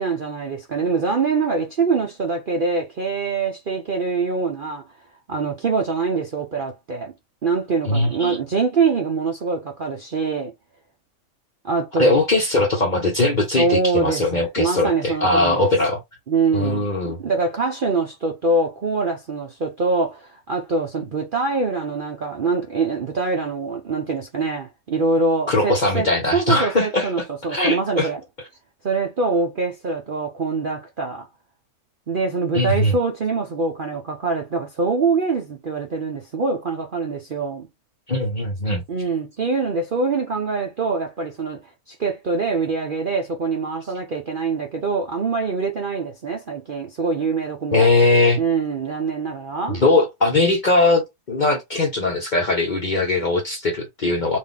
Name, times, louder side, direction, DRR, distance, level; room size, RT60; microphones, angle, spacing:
voice 1, 0.0-4.8 5.3-7.1 7.4-10.5 11.6-12.1 13.6-15.6 16.3-26.1 26.3-28.2 28.8-31.3 32.1-37.7 38.9-41.6 41.9-47.9 48.4-49.8, right 4 dB, 50° right, 0.6 m, -24 dB
voice 2, 7.9-8.4 12.0-16.0 16.5-17.2 25.5-27.1 27.5-28.1 32.5-33.0 38.1-38.8 47.7-48.4 49.7-54.4, left 2 dB, 40° left, 0.7 m, -20 dB
4.0 x 2.6 x 3.4 m
omnidirectional pair, 1.7 m